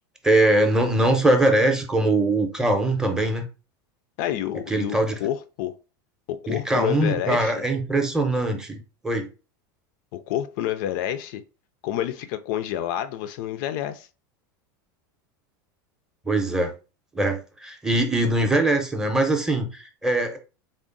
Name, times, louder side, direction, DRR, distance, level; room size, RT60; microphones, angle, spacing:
voice 1, 0.2-3.5 4.7-5.2 6.5-9.3 16.3-16.7 17.1-20.4, right 1 dB, 5° right, 0.6 m, -22 dB
voice 2, 4.2-5.7 6.3-7.5 10.1-11.4 11.8-14.1, left 11 dB, 60° left, 0.4 m, -29 dB
3.6 x 2.0 x 3.8 m
supercardioid pair, 145°, 11 cm